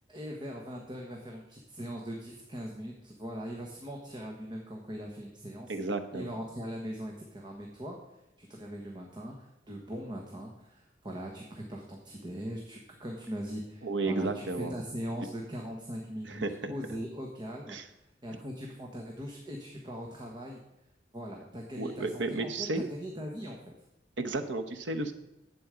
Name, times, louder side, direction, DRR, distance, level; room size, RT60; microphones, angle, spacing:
voice 1, 0.1-5.8 6.1-8.0 8.4-17.8 18.2-20.6 21.1-23.7, equal, 25° right, 0 dB, 1.2 m, -40 dB
voice 2, 5.7-6.3 13.8-14.7 16.2-16.7 17.7-17.8 21.8-22.8 24.2-25.1, right 2 dB, 90° right, 8 dB, 1.0 m, -33 dB
11.0 x 8.1 x 5.0 m, 0.90 s
head